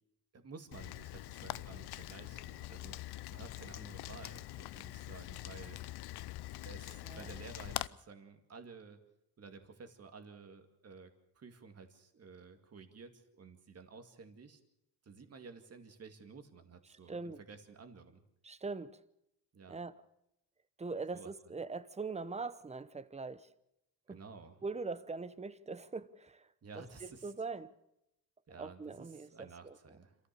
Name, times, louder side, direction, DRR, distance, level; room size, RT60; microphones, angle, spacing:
voice 1, 0.3-3.0 3.3-5.8 6.6-9.0 9.4-11.1 11.4-14.6 15.0-18.2 19.5-19.8 21.1-21.3 24.1-24.6 26.6-27.3 28.5-30.2, right 5 dB, 40° right, 2.4 m, -53 dB
Rain, 0.7-7.9, left 16 dB, 85° left, 0.7 m, -44 dB
voice 2, 17.1-17.4 18.4-19.0 19.7-19.9 20.8-23.5 24.1-24.2 24.6-26.5 26.8-27.7 28.6-29.8, right 4 dB, 15° right, 0.9 m, -42 dB
27.0 x 14.5 x 7.0 m
cardioid pair, 120°, 38 cm